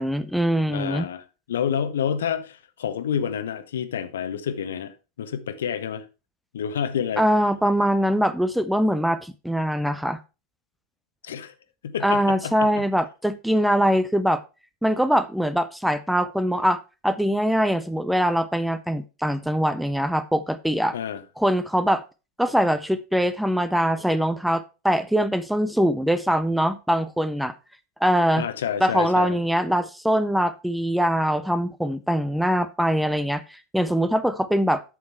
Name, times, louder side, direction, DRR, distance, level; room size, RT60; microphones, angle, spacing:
voice 1, 0.0-1.1 7.2-10.2 12.0-14.4 14.8-21.0 21.4-22.0 22.4-27.5 28.0-28.5 28.8-34.8, equal, ahead, 0.5 m, -22 dB
voice 2, 0.7-6.0 6.5-7.2 11.2-11.5 11.8-12.8 20.9-21.2 28.4-29.4, left 8 dB, 60° left, 0.9 m, -29 dB
8.4 x 6.4 x 4.4 m
figure-of-eight pair, 90°, 0 cm